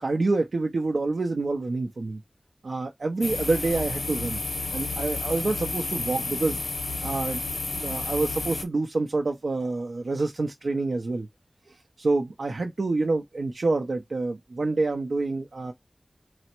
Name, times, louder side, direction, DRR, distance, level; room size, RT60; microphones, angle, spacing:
voice 1, 0.0-2.2 2.6-4.4 4.7-6.6 7.0-7.4 7.8-11.3 11.7-15.7, right 3 dB, 85° right, 0.6 m, -27 dB
sound 1, 3.2-8.6, left 3 dB, 90° left, 0.7 m, -31 dB
4.1 x 2.1 x 4.3 m
wide cardioid pair, 70°, 0 cm